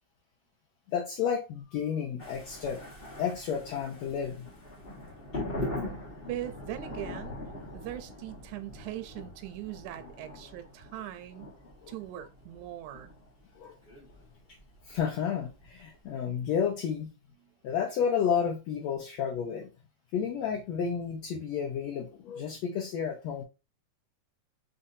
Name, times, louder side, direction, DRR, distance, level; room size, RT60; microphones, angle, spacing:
voice 1, 0.9-2.8 3.2-4.5 11.8-11.9 13.6-13.7 14.9-17.1 17.6-19.7 20.1-23.4, left 7 dB, 70° left, 1.8 m, -31 dB
sound 1, 2.2-16.0, left 1 dB, 35° left, 0.9 m, -42 dB
voice 2, 6.3-7.4 7.7-11.5 11.9-13.2 17.4-17.5, right 13 dB, 75° right, 1.9 m, -40 dB
5.4 x 3.4 x 2.7 m
omnidirectional pair, 3.7 m